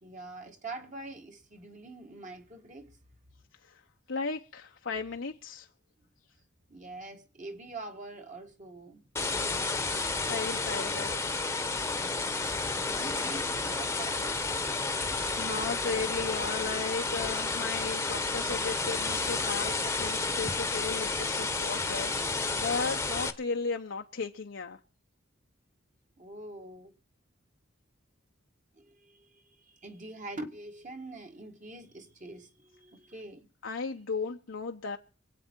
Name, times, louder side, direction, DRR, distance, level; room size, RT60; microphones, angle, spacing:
voice 1, 0.0-3.0 6.4-6.5 6.7-9.1 12.5-14.4 26.2-27.0 28.7-33.5, right 2 dB, 40° right, 1.7 m, -45 dB
voice 2, 4.1-5.7 10.3-11.2 14.9-24.8 33.6-35.0, left 4 dB, 75° left, 0.8 m, -35 dB
sound 1, 9.2-23.3, left 3 dB, 15° left, 1.0 m, -31 dB
25.5 x 8.5 x 4.5 m
head